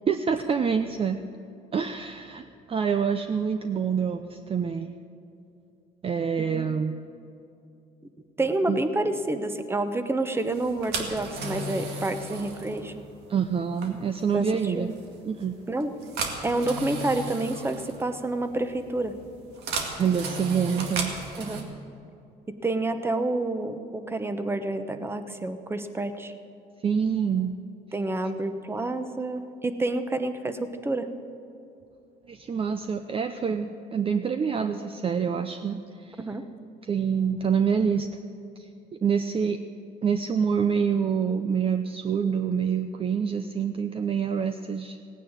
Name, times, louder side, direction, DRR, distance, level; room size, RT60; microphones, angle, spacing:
voice 1, 0.1-1.2 1.7-4.9 6.0-7.0 8.7-8.8 13.3-14.9 15.2-15.6 20.0-21.1 26.8-27.5 32.3-36.2 36.8-38.1 38.6-38.7 39.0-39.6 40.0-45.0, right 6 dB, 35° right, 8 dB, 0.6 m, -26 dB
voice 2, 8.4-13.0 14.3-14.9 15.7-15.9 16.4-19.1 21.4-21.6 22.6-26.3 27.9-31.1 36.2-36.4, right 2 dB, 15° right, 9 dB, 1.0 m, -28 dB
sound 1, 10.5-21.6, right 2 dB, 80° right, 2.1 m, -36 dB
17.0 x 9.4 x 8.9 m, 2.6 s
cardioid pair, 110°, 17 cm